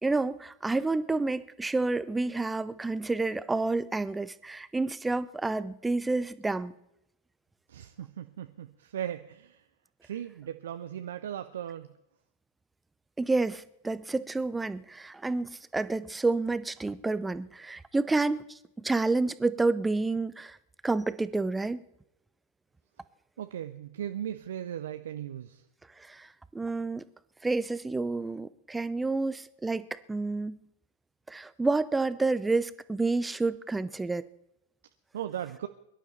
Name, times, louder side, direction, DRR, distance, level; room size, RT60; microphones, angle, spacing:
voice 1, 0.0-6.7 13.2-20.6 20.8-21.8 26.0-27.0 27.4-30.6 31.3-34.3, right 3 dB, 10° right, 16 dB, 0.6 m, -29 dB
voice 2, 7.7-9.6 10.0-11.9 23.4-25.6 35.1-35.7, right 10 dB, 60° right, 9 dB, 0.6 m, -37 dB
23.0 x 11.5 x 4.4 m, 0.82 s
figure-of-eight pair, 90°, 0 cm